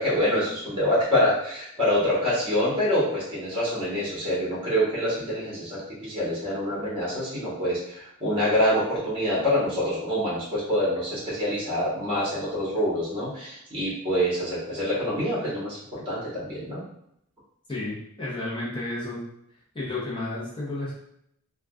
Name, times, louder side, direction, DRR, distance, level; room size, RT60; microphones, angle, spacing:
voice 1, 0.0-16.8, equal, 25° right, -8 dB, 1.3 m, -26 dB
voice 2, 17.7-19.2 19.7-21.0, left 2 dB, 20° left, -7 dB, 0.8 m, -32 dB
3.6 x 2.3 x 2.4 m, 0.74 s
head